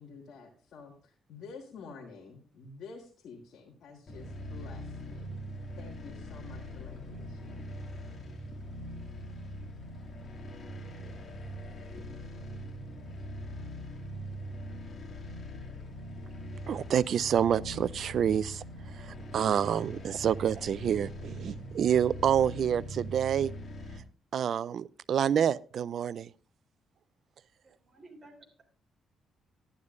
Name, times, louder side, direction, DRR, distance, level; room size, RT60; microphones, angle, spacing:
voice 1, 0.0-5.3 5.8-7.7, left 4 dB, 70° left, 1.5 m, -49 dB
sound 1, 4.1-24.0, equal, 45° left, 2.2 m, -42 dB
voice 2, 16.7-18.6 19.0-23.5 24.3-26.3, right 9 dB, 60° right, 0.4 m, -28 dB
voice 3, 27.9-28.6, right 2 dB, 30° right, 3.4 m, -53 dB
11.5 x 11.0 x 2.5 m
cardioid pair, 90°, 0 cm